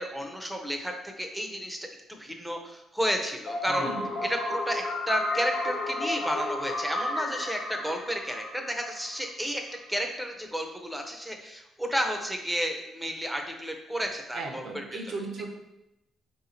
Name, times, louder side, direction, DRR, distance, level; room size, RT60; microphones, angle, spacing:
voice 1, 0.0-1.8 2.1-3.9 4.2-9.6 9.9-14.8, equal, 5° right, 4 dB, 0.6 m, -32 dB
sound 1, 3.5-9.3, left 2 dB, 75° left, 0.8 m, -32 dB
voice 2, 3.7-4.2 14.3-15.5, right 3 dB, 70° right, 2 dB, 0.8 m, -36 dB
3.4 x 2.9 x 4.1 m, 0.89 s
cardioid pair, 90°, 0 cm